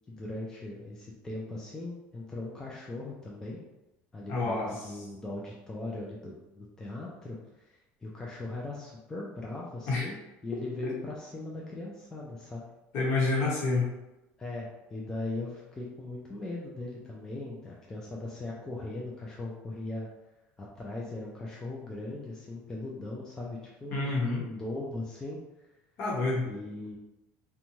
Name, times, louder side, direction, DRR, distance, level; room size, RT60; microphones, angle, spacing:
voice 1, 0.1-3.6 4.1-7.4 8.0-10.2 10.4-12.6 14.4-20.1 20.6-24.1 24.4-25.4 26.4-27.0, left 2 dB, 10° left, -4 dB, 0.4 m, -39 dB
voice 2, 4.3-4.7 9.9-10.1 12.9-13.9 23.9-24.4 26.0-26.5, left 3 dB, 55° left, -4 dB, 1.0 m, -28 dB
2.6 x 2.2 x 3.0 m, 0.98 s
cardioid pair, 140°, 5 cm